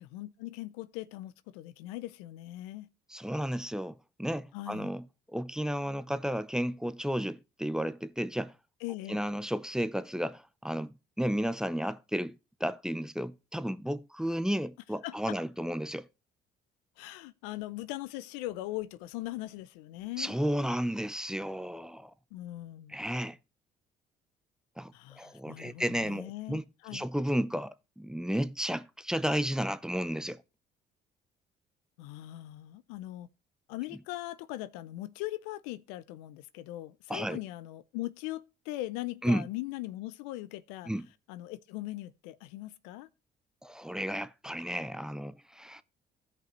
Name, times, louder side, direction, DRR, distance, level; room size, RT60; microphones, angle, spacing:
voice 1, 0.0-2.9 4.5-4.9 8.8-9.2 15.0-15.4 17.0-20.3 22.3-23.0 24.9-27.1 32.0-33.3 33.7-40.9 41.3-43.1, left 16 dB, 90° left, 0.5 m, -40 dB
voice 2, 3.1-5.0 5.3-8.5 9.1-16.1 20.2-22.1 22.9-23.4 24.8-24.9 25.2-26.6 26.9-30.4 37.1-37.4 39.2-39.5 40.9-41.1 43.6-45.8, equal, 5° right, 0.6 m, -33 dB
16.0 x 5.4 x 3.0 m
supercardioid pair, 65°, 20 cm